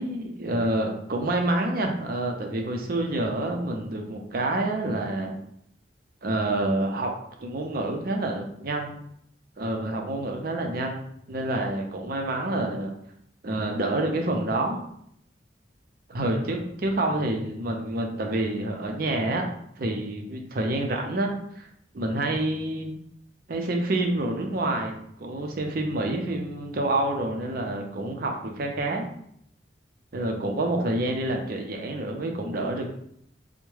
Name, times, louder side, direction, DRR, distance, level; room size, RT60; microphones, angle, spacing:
voice 1, 0.0-5.4 6.2-7.1 7.4-9.0 9.6-11.0 11.3-12.9 13.4-14.8 16.1-19.4 19.8-21.7 21.9-22.9 23.5-29.1 30.1-32.9, right 2 dB, 55° right, 2 dB, 0.5 m, -28 dB
3.4 x 2.1 x 3.2 m, 0.70 s
head